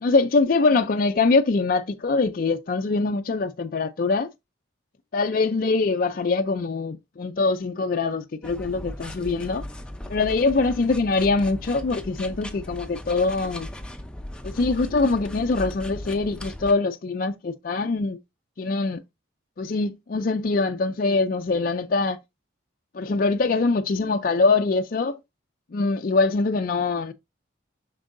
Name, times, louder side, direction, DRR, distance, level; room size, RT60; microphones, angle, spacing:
voice 1, 0.0-4.3 5.1-9.6 10.1-13.7 14.4-18.2 18.6-19.0 19.6-22.2 22.9-25.2 25.7-27.1, left 3 dB, 45° left, 0.4 m, -23 dB
sound 1, 8.4-16.7, left 1 dB, 5° left, 0.6 m, -37 dB
7.3 x 6.0 x 2.6 m
head